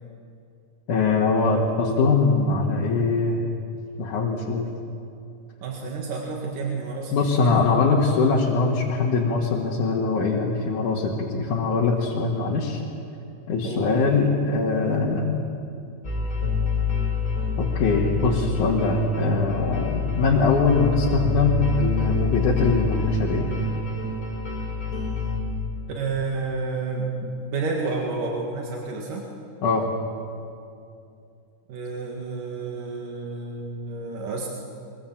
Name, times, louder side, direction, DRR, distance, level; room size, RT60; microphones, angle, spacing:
voice 1, 0.9-3.4 4.0-4.7 7.1-12.8 13.5-15.4 17.6-23.5 29.6-29.9, left 4 dB, 75° left, -3 dB, 3.2 m, -22 dB
voice 2, 5.6-7.6 13.6-14.2 26.0-29.3 31.7-34.5, right 4 dB, 85° right, -1 dB, 3.4 m, -30 dB
sound 1, 16.0-25.4, left 3 dB, 25° left, 4.9 m, -26 dB
23.0 x 23.0 x 7.4 m, 2.5 s
omnidirectional pair, 3.6 m